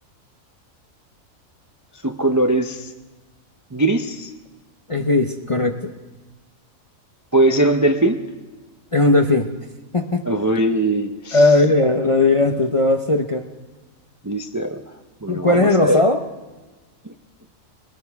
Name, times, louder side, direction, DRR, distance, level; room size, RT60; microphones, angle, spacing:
voice 1, 2.0-2.9 3.7-4.3 7.3-8.2 10.3-11.4 14.2-14.8 15.2-16.0 17.1-17.2, right 2 dB, 20° right, 5 dB, 0.5 m, -20 dB
voice 2, 4.9-5.9 8.9-9.5 9.9-10.2 11.3-13.5 15.3-16.2, left 2 dB, 30° left, 4 dB, 0.6 m, -17 dB
21.0 x 18.0 x 3.5 m, 1.2 s
omnidirectional pair, 1.4 m